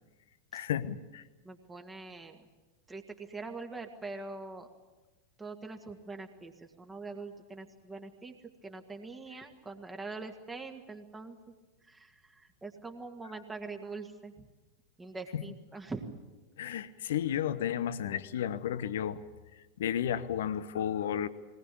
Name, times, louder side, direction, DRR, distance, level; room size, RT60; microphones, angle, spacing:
voice 1, 0.5-1.2 15.3-15.4 16.6-19.2 19.8-21.3, left 10 dB, 60° left, 15 dB, 1.0 m, -32 dB
voice 2, 1.4-2.5 2.9-4.7 5.4-8.3 8.6-11.4 11.8-14.5 15.0-16.2, right 3 dB, 10° right, 4 dB, 2.0 m, -43 dB
21.0 x 19.5 x 8.5 m, 1.2 s
figure-of-eight pair, 90°, 0 cm